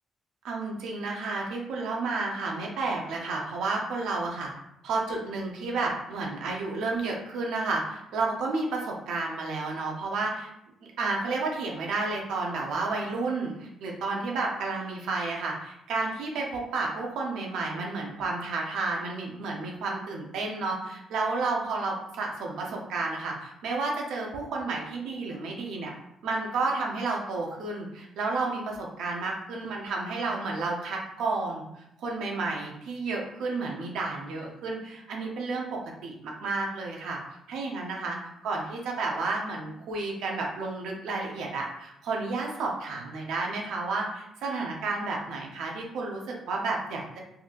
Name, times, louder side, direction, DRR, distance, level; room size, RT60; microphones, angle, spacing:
voice 1, 0.4-4.5 4.8-10.5 10.8-25.9 26.2-37.2 37.5-38.2 38.4-47.2, right 3 dB, 85° right, -1 dB, 0.7 m, -31 dB
3.8 x 2.7 x 2.4 m, 0.79 s
cardioid pair, 90°, 0 cm